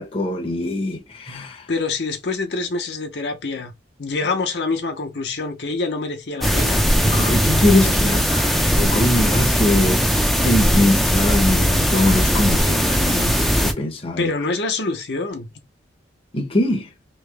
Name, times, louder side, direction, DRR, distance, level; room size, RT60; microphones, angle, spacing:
voice 1, 0.0-1.7 7.0-10.1 10.4-14.3 16.3-16.9, left 1 dB, 30° left, 0.7 m, -22 dB
voice 2, 1.7-3.7 4.0-6.9 14.2-15.5, left 3 dB, 65° left, 0.7 m, -25 dB
sound 1, 6.4-13.7, equal, ahead, 0.4 m, -19 dB
3.1 x 2.8 x 3.3 m
head